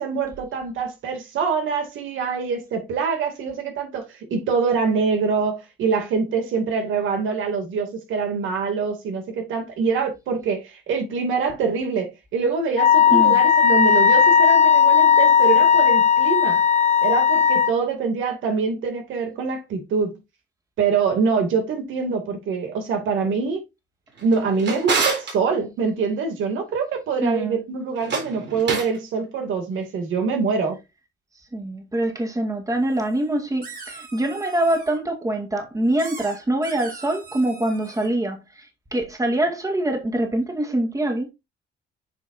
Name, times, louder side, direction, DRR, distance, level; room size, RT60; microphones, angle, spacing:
voice 1, 0.0-4.1 4.3-16.6 17.0-20.2 20.8-23.6 24.2-30.8, right 5 dB, 80° right, 2.5 m, -24 dB
Wind instrument woodwind instrument, 12.8-17.7, left 7 dB, 35° left, 1.1 m, -16 dB
Drawer open or close, 24.2-25.4 27.9-29.0, right 4 dB, 65° right, 3.9 m, -26 dB
voice 2, 27.2-27.6 31.5-41.3, right 1 dB, 15° right, 2.0 m, -24 dB
sound 1, 33.0-33.1 33.6-35.0 36.0-38.1, right 4 dB, 45° right, 3.2 m, -40 dB
8.5 x 5.2 x 2.6 m
cardioid pair, 90°, 20 cm